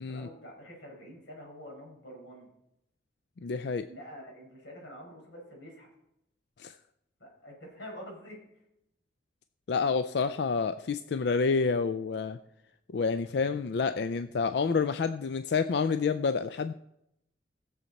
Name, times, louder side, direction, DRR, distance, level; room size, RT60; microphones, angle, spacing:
voice 1, 0.1-2.5 3.9-5.9 7.2-8.4, equal, 80° left, -1 dB, 4.8 m, -47 dB
voice 2, 3.4-3.9 6.6-6.7 9.7-12.4 12.9-16.7, left 5 dB, 60° left, 11 dB, 0.4 m, -28 dB
18.5 x 7.2 x 4.1 m, 0.82 s
head